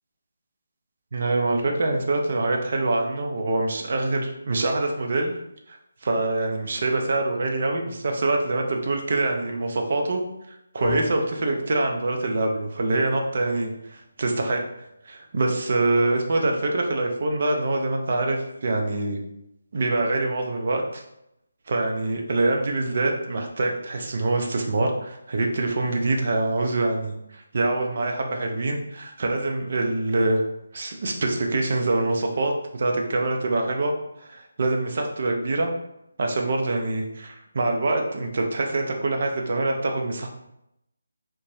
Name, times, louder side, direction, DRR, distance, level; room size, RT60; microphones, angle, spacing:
voice 1, 1.1-5.3 5.7-5.8 6.0-10.2 10.5-14.6 15.1-19.2 19.7-21.0 21.7-30.4 30.7-33.9 34.2-35.7 36.2-40.3, right 2 dB, 50° right, 2 dB, 0.5 m, -25 dB
sound 1, 10.8-19.1, left 2 dB, 40° left, 0.7 m, -42 dB
2.6 x 2.1 x 3.2 m, 0.82 s
figure-of-eight pair, 155°, 0 cm